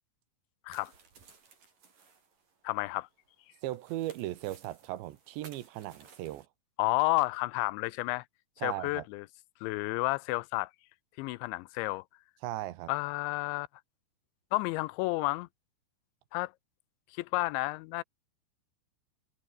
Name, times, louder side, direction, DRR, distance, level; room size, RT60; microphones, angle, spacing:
sound 1, 0.7-6.5, right 5 dB, 45° right, 6.7 m, -57 dB
voice 1, 2.6-3.1 6.8-8.3 8.6-9.3 9.6-10.7 11.2-12.0 12.9-13.7 14.5-15.5 16.3-16.5 17.1-18.0, left 21 dB, 85° left, 2.9 m, -31 dB
voice 2, 3.6-6.5 8.6-9.0 12.4-12.9, right 15 dB, 75° right, 3.3 m, -37 dB
omnidirectional pair, 5.3 m